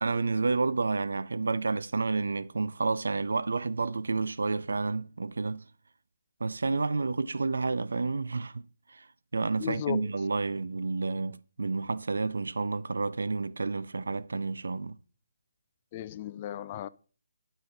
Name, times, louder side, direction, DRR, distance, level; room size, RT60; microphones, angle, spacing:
voice 1, 0.0-5.6 6.4-8.6 8.9-9.0 9.3-14.9, right 3 dB, 80° right, 0.4 m, -30 dB
voice 2, 9.6-10.1 15.9-16.9, left 12 dB, 30° left, 0.3 m, -35 dB
11.5 x 4.1 x 3.8 m
hypercardioid pair, 160°, 0 cm